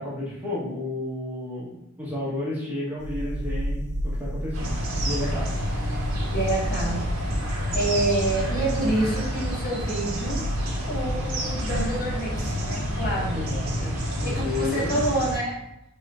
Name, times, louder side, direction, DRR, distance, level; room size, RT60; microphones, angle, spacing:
voice 1, 0.0-4.7 5.0-5.5 13.3-13.9 14.2-15.0, left 2 dB, 10° right, -8 dB, 1.1 m, -32 dB
sound 1, 3.0-14.6, equal, 40° right, 0.4 m, -33 dB
sound 2, 4.5-15.4, equal, 75° right, 1.3 m, -29 dB
voice 2, 6.3-7.0 7.3-10.4 10.8-13.4 14.2-15.6, right 2 dB, 45° left, -7 dB, 1.5 m, -28 dB
3.9 x 3.6 x 2.4 m, 0.81 s
head